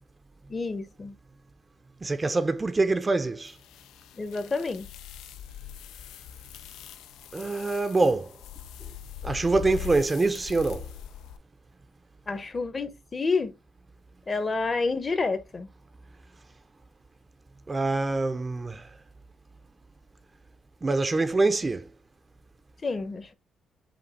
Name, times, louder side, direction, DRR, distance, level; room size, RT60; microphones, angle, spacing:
voice 1, 0.5-1.1 4.1-4.9 12.3-13.5 14.3-15.7 22.8-23.3, left 4 dB, 30° left, 0.8 m, -29 dB
voice 2, 2.0-3.6 7.3-8.3 9.2-10.9 17.7-18.9 20.8-21.9, right 3 dB, 25° right, 0.5 m, -25 dB
sound 1, 3.5-11.4, left 9 dB, 90° left, 0.3 m, -42 dB
5.1 x 2.6 x 4.0 m
cardioid pair, 90°, 0 cm